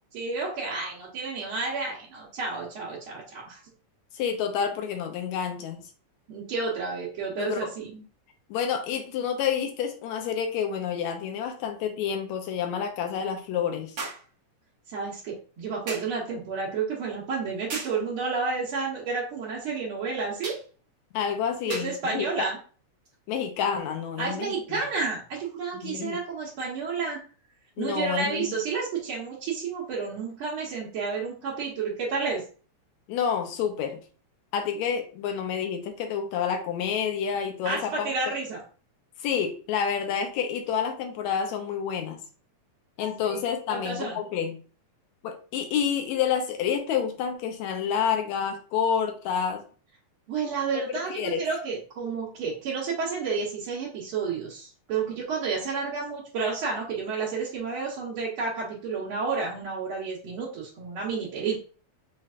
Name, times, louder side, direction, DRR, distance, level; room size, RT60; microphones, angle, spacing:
voice 1, 0.1-3.6 6.3-8.0 14.9-20.6 21.7-22.6 24.2-27.2 27.8-32.4 37.6-38.6 43.3-43.4 43.7-44.2 50.3-61.6, right 4 dB, 60° right, -7 dB, 1.6 m, -31 dB
voice 2, 4.1-5.8 7.4-7.7 8.5-13.9 21.1-22.5 23.3-24.8 25.8-26.2 27.8-28.5 33.1-34.0 34.5-38.1 39.2-42.2 43.0-44.6 45.2-49.6 51.1-51.4, left 7 dB, 75° left, 5 dB, 1.9 m, -29 dB
sound 1, 10.2-10.3 14.0-14.3 15.9-16.2 17.7-18.0 20.4-20.7 21.7-22.0 23.0-23.2, right 3 dB, 80° right, 0.8 m, -36 dB
5.7 x 3.2 x 2.4 m, 0.39 s
omnidirectional pair, 3.4 m